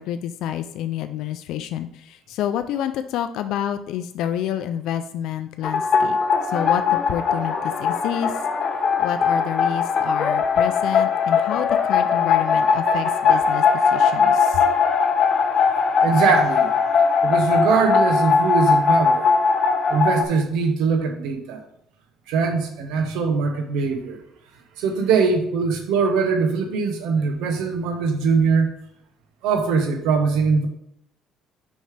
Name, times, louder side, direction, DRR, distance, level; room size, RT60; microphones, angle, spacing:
voice 1, 0.0-6.2 6.4-8.4 9.0-14.6, left 10 dB, 65° left, 9 dB, 0.3 m, -29 dB
sound 1, 5.6-20.2, left 5 dB, 40° left, 0.8 m, -20 dB
voice 2, 16.0-16.7 17.2-19.3 19.9-21.6 22.3-24.2 24.8-28.7 29.4-30.7, right 5 dB, 85° right, 5 dB, 0.9 m, -21 dB
6.5 x 5.4 x 3.3 m, 0.74 s
cardioid pair, 155°, 0 cm